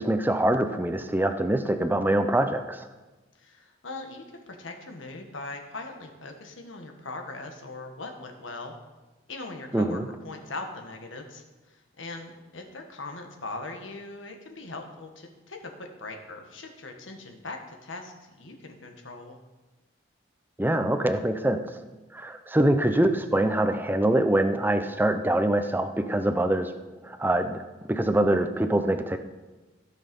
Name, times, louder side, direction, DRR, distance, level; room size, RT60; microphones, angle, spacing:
voice 1, 0.0-2.9 9.7-10.1 20.6-21.6 22.1-26.7 27.0-29.2, right 1 dB, 10° right, 8 dB, 0.6 m, -24 dB
voice 2, 3.4-8.7 9.3-19.4, left 2 dB, 90° left, 3 dB, 1.6 m, -40 dB
15.0 x 6.6 x 5.3 m, 1.2 s
head